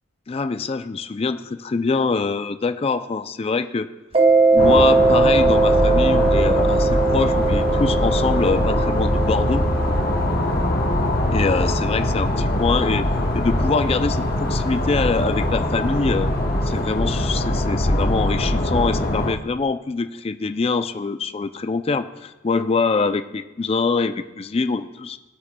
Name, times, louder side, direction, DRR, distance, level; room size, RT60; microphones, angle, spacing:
voice 1, 0.3-3.9 4.5-9.6 11.3-13.1 13.3-16.3 16.6-25.2, left 4 dB, 30° left, 10 dB, 0.4 m, -24 dB
Mallet percussion, 4.1-10.5, right 3 dB, 30° right, 0.6 m, -19 dB
sound 1, 4.6-19.3, left 1 dB, 50° left, 0.9 m, -22 dB
19.0 x 8.4 x 2.2 m, 1.0 s
head